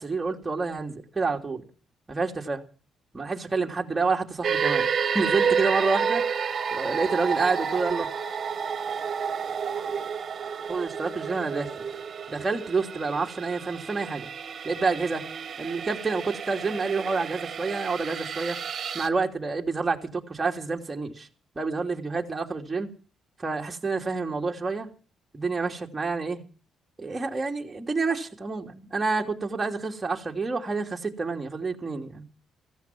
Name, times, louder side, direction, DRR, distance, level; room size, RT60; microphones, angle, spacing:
voice 1, 0.0-1.6 2.1-2.6 3.1-4.9 5.1-6.2 6.7-8.1 10.7-11.9 12.3-14.3 14.6-15.2 15.6-18.6 18.9-21.3 21.5-22.9 23.4-24.9 25.3-26.4 27.0-32.2, right 4 dB, 25° right, 3.0 m, -28 dB
sound 1, 4.4-19.1, right 6 dB, 45° right, 1.9 m, -30 dB
15.5 x 15.0 x 6.1 m
cardioid pair, 90°, 0 cm